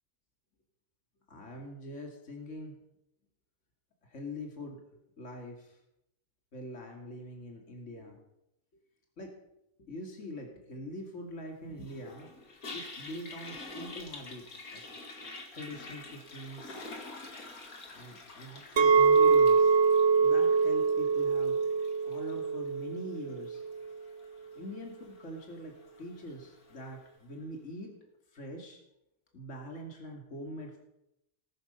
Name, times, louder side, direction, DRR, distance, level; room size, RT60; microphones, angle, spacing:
voice 1, 1.3-2.8 4.0-4.8 5.2-5.8 6.5-8.2 9.2-9.3 9.8-12.3 12.7-14.8 15.5-16.9 17.9-19.7 20.2-21.6 22.0-23.6 24.5-27.9 28.3-28.8 29.3-30.8, equal, 55° left, 1 dB, 2.8 m, -43 dB
Toilet flush, 11.8-27.0, left 2 dB, 80° left, 2.7 m, -48 dB
Chink clink, 18.8-23.9, right 5 dB, 55° right, 1.1 m, -24 dB
18.5 x 13.0 x 5.7 m, 0.84 s
omnidirectional pair, 1.5 m